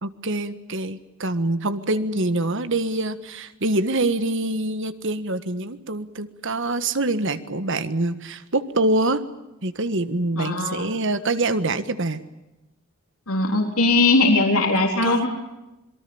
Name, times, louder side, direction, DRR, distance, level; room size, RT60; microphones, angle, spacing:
voice 1, 0.0-9.2 9.6-12.2 15.0-15.3, right 2 dB, 60° right, 11 dB, 1.6 m, -25 dB
voice 2, 10.4-10.9 13.3-15.3, left 2 dB, 80° left, 2 dB, 3.9 m, -20 dB
27.0 x 23.0 x 7.1 m, 0.97 s
head